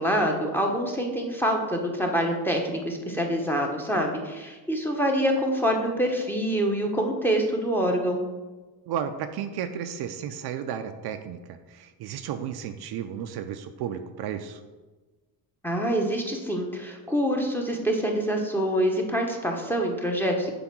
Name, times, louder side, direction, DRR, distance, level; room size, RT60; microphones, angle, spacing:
voice 1, 0.0-8.2 15.6-20.5, equal, 5° left, 1 dB, 1.0 m, -26 dB
voice 2, 8.9-14.6, right 8 dB, 60° right, 8 dB, 0.6 m, -33 dB
7.9 x 3.4 x 6.1 m, 1.2 s
cardioid pair, 135°, 42 cm